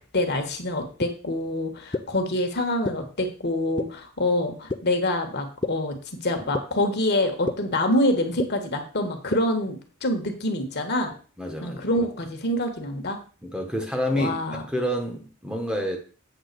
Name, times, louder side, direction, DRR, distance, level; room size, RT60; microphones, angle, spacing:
voice 1, 0.1-5.9 6.2-11.1 11.6-13.2 14.2-14.6, left 1 dB, 50° left, 1.4 m, -26 dB
sound 1, 1.0-1.1 1.9-2.0 2.8-2.9 3.8-3.9 4.7-4.8 5.6-5.7 6.5-6.6 7.5-7.6 8.4-8.5 9.3-9.4, left 3 dB, 20° left, 0.5 m, -26 dB
voice 2, 11.4-12.0 13.4-14.3 14.7-16.0, equal, 5° right, 1.1 m, -28 dB
8.1 x 3.7 x 6.7 m
head